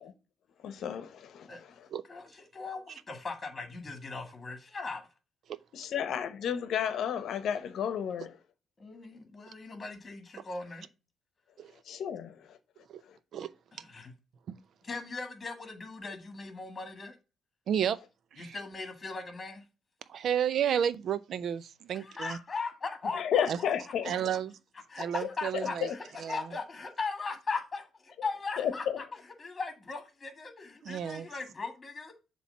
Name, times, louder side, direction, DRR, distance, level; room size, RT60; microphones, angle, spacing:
voice 1, 0.6-1.7 5.7-8.3 11.9-12.6 23.1-24.1 25.2-26.0 28.6-29.0, left 8 dB, 70° left, 0.9 m, -32 dB
voice 2, 2.1-5.0 8.8-10.9 13.7-14.1 14.8-17.1 18.4-19.6 21.9-23.7 24.9-32.1, left 4 dB, 30° left, 1.7 m, -39 dB
voice 3, 17.7-18.0 18.3-18.6 20.1-22.4 23.5-23.6 24.0-24.6 25.0-25.9 26.2-26.5 30.8-31.3, right 9 dB, 65° right, 0.5 m, -32 dB
7.0 x 3.1 x 5.5 m
cardioid pair, 90°, 0 cm